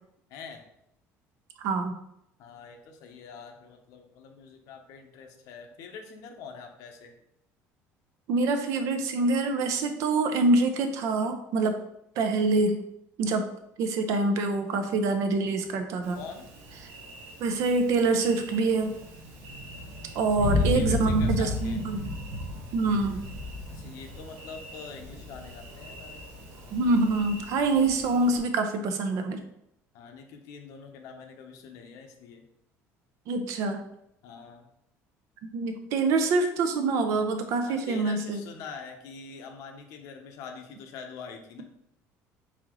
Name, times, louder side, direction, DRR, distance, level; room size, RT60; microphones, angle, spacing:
voice 1, 0.3-0.6 2.4-7.2 16.1-16.5 20.4-21.8 23.7-26.2 29.9-32.4 34.2-34.7 37.7-41.6, left 5 dB, 70° left, 4 dB, 0.8 m, -44 dB
voice 2, 1.6-1.9 8.3-11.8 12.2-12.8 13.2-13.4 13.8-16.2 17.4-19.0 20.1-22.0 22.7-23.3 26.7-29.4 33.3-33.8 35.4-38.4, right 3 dB, 65° right, 7 dB, 0.6 m, -25 dB
Thunder, 16.0-28.4, left 2 dB, 85° right, 1.2 m, -35 dB
4.1 x 3.9 x 3.0 m, 0.79 s
cardioid pair, 150°, 6 cm